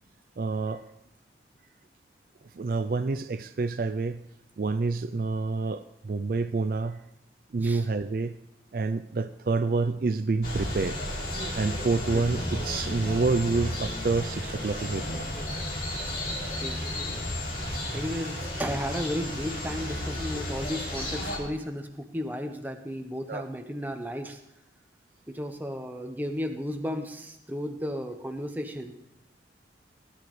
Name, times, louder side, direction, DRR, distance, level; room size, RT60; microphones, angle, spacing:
voice 1, 0.4-0.8 2.5-4.2 4.6-7.0 7.5-8.4 8.7-11.0 11.5-15.3 23.3-23.4, right 3 dB, 55° right, 11 dB, 0.4 m, -28 dB
sound 1, 10.4-21.4, left 1 dB, 50° left, 3.3 m, -33 dB
voice 2, 17.9-24.4 25.3-28.9, equal, 10° right, 5 dB, 0.9 m, -34 dB
17.5 x 10.5 x 3.2 m, 0.84 s
head